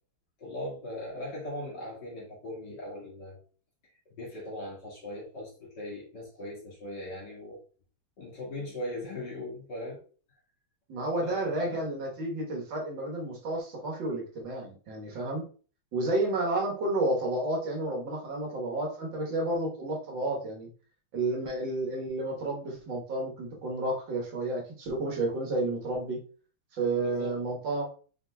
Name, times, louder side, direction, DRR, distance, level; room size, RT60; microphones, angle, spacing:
voice 1, 0.4-3.4 4.1-7.6 8.2-10.0 11.2-11.9 27.0-27.4, left 1 dB, 55° left, -5 dB, 2.3 m, -39 dB
voice 2, 10.9-15.4 15.9-20.7 21.1-26.2 26.7-27.9, right 2 dB, 60° right, -1 dB, 1.9 m, -31 dB
4.9 x 4.0 x 2.2 m, 0.39 s
omnidirectional pair, 2.4 m